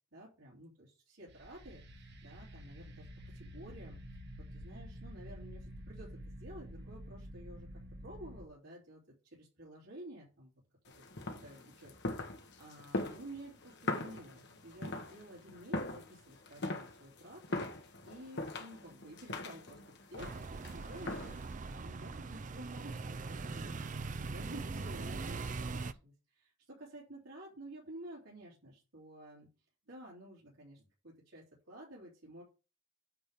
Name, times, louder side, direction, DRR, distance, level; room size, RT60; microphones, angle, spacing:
voice 1, 0.1-7.7 8.0-10.5 10.9-11.9 12.3-19.8 20.1-29.5 29.9-32.4, right 1 dB, 85° right, -6 dB, 3.2 m, -52 dB
sound 1, 1.3-8.4, equal, 60° right, 1.4 m, -49 dB
sound 2, 10.9-21.5, left 2 dB, 60° left, 1.5 m, -41 dB
sound 3, 20.2-25.9, right 3 dB, 40° right, 0.5 m, -41 dB
9.2 x 3.6 x 6.7 m, 0.32 s
head